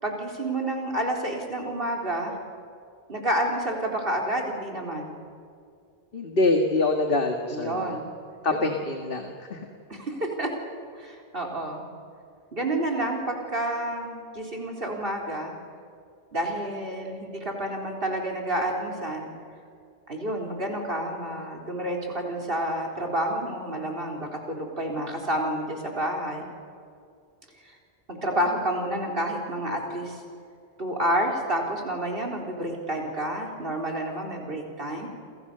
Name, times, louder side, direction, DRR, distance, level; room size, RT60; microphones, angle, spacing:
voice 1, 0.0-2.4 3.1-5.1 7.5-8.1 8.5-8.6 9.9-10.5 10.9-11.9 12.5-15.5 16.3-19.3 20.1-26.5 27.6-27.8 28.1-30.2 30.8-35.1, right 1 dB, 55° right, 1 dB, 4.2 m, -29 dB
voice 2, 6.1-7.9 8.4-9.7, left 2 dB, 55° left, 4 dB, 2.1 m, -25 dB
30.0 x 26.5 x 6.8 m, 2.4 s
omnidirectional pair, 1.1 m